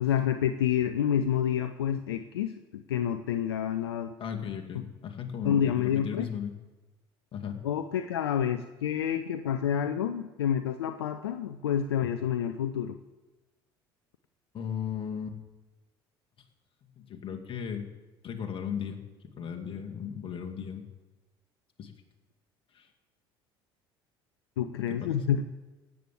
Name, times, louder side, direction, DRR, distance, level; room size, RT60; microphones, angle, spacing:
voice 1, 0.0-4.1 4.7-4.8 5.4-6.3 7.6-13.0 24.6-25.4, left 9 dB, 80° left, 9 dB, 0.6 m, -28 dB
voice 2, 4.2-6.5 7.3-7.6 14.5-15.3 17.0-17.8 18.2-19.0 19.4-20.8 21.8-21.9 22.7-22.9 24.9-25.4, left 8 dB, 45° left, 3 dB, 2.3 m, -36 dB
17.0 x 8.6 x 7.7 m, 1.2 s
hypercardioid pair, 65°, 13 cm